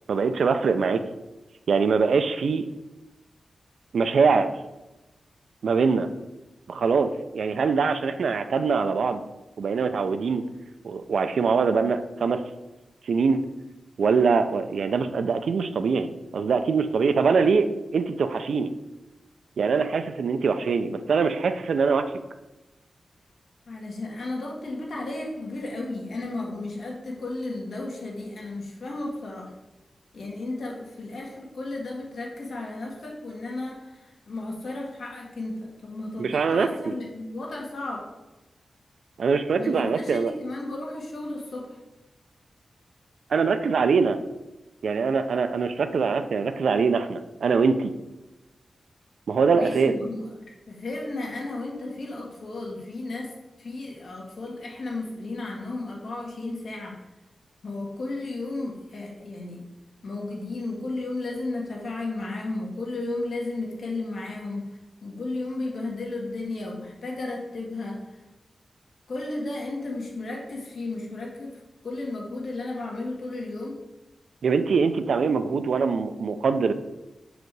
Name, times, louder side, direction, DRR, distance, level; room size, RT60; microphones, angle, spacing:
voice 1, 0.1-1.0 1.7-2.7 3.9-4.5 5.6-6.1 6.7-9.2 9.6-10.4 10.8-12.4 13.1-13.4 14.0-17.7 17.9-18.7 19.6-22.0 36.2-36.9 39.2-40.3 43.3-44.2 44.8-47.9 49.3-49.9 74.4-76.7, right 5 dB, 80° right, 9 dB, 0.5 m, -23 dB
voice 2, 23.7-29.5 30.1-38.1 39.6-41.8 49.5-57.0 57.6-59.6 60.0-64.7 65.0-68.1 69.1-73.8, left 2 dB, 65° left, -1 dB, 1.8 m, -34 dB
6.5 x 5.0 x 4.7 m, 1.0 s
wide cardioid pair, 140°, 0 cm